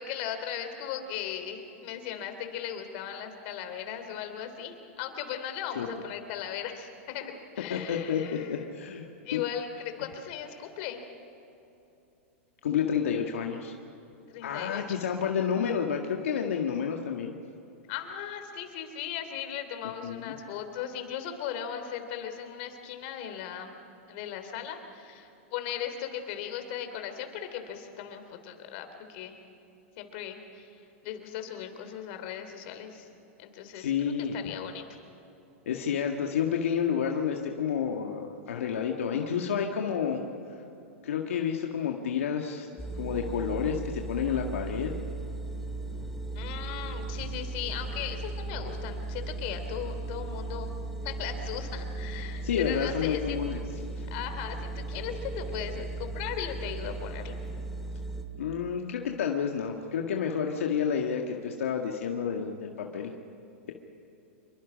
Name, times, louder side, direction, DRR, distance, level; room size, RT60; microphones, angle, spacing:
voice 1, 0.0-8.6 8.9-9.7 10.0-11.0 14.3-15.1 17.9-23.8 24.1-29.4 30.0-33.1 33.4-34.8 46.3-50.7 51.0-53.4 54.1-57.4, left 9 dB, 55° left, 7 dB, 3.3 m, -38 dB
voice 2, 7.7-9.1 9.3-9.4 12.6-13.7 14.4-17.3 20.0-20.3 33.7-34.4 35.7-40.2 41.0-42.7 43.0-44.9 52.4-53.6 54.0-54.1 58.4-63.1, left 7 dB, 80° left, 2 dB, 1.7 m, -30 dB
sound 1, 42.8-58.2, right 2 dB, 5° left, 2.2 m, -36 dB
27.0 x 23.5 x 5.2 m, 2.9 s
hypercardioid pair, 120°, 7 cm